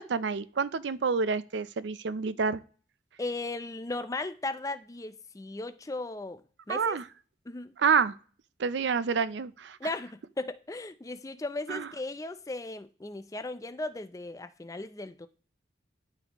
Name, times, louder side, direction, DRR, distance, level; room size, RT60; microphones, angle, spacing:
voice 1, 0.0-2.6 6.7-7.0 7.8-8.1 8.6-9.8 11.7-11.9, right 5 dB, 75° right, 0.5 m, -28 dB
voice 2, 3.2-6.4 6.7-7.0 7.5-7.7 9.8-15.3, left 2 dB, 20° left, 0.4 m, -36 dB
12.5 x 4.2 x 2.9 m
head